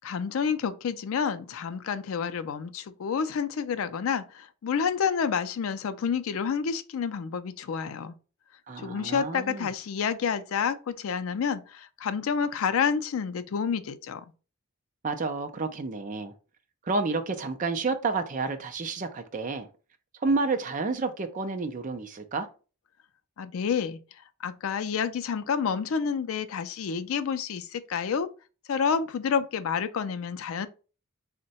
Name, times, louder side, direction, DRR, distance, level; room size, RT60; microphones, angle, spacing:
voice 1, 0.0-8.1 8.8-14.3 23.4-24.0 24.4-28.3 28.7-30.7, left 6 dB, 75° left, 0.4 m, -29 dB
voice 2, 8.7-9.7 15.0-16.3 16.8-19.7 20.2-22.5, right 3 dB, 35° right, 0.4 m, -30 dB
3.7 x 2.1 x 4.0 m
head